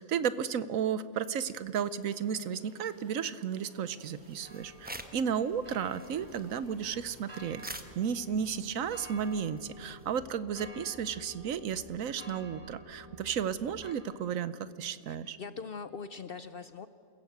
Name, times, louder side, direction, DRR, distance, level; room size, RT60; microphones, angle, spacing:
voice 1, 0.0-7.6 7.9-14.5 14.8-15.4, right 8 dB, 70° right, 15 dB, 1.1 m, -33 dB
sound 1, 1.2-8.7, equal, 45° right, 4.4 m, -60 dB
sound 2, 4.0-5.3 5.6-10.2, right 1 dB, 10° right, 0.9 m, -48 dB
sound 3, 4.4-13.9, equal, 25° right, 2.7 m, -51 dB
voice 2, 15.0-16.9, left 5 dB, 55° left, 12 dB, 0.7 m, -42 dB
28.5 x 16.0 x 8.0 m, 2.5 s
omnidirectional pair, 1.5 m